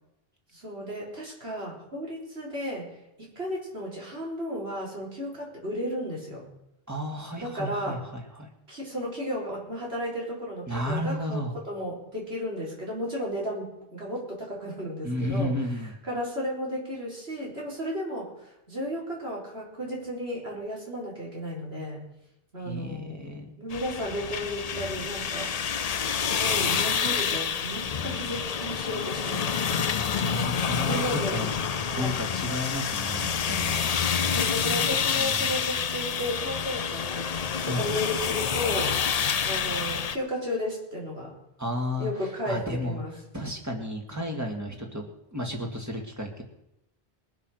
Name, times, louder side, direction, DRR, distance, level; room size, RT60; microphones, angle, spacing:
voice 1, 0.5-2.9 3.2-6.5 7.4-8.0 8.7-15.5 16.0-22.1 22.5-23.2 23.6-25.5 26.2-29.9 30.8-31.4 31.8-32.1 34.3-37.2 37.6-39.0 39.4-41.4 42.0-43.1, equal, 85° right, -4 dB, 4.7 m, -34 dB
voice 2, 6.9-8.5 10.7-11.5 15.0-15.9 22.6-23.5 30.2-31.5 31.9-33.8 34.7-34.8 35.1-35.5 37.6-37.9 41.6-42.1 42.5-43.0 43.3-45.0 45.3-46.4, equal, 15° right, 1 dB, 2.2 m, -32 dB
sound 1, 23.7-40.2, left 6 dB, 45° left, 0.6 m, -28 dB
21.0 x 7.5 x 6.5 m, 0.85 s
omnidirectional pair, 1.0 m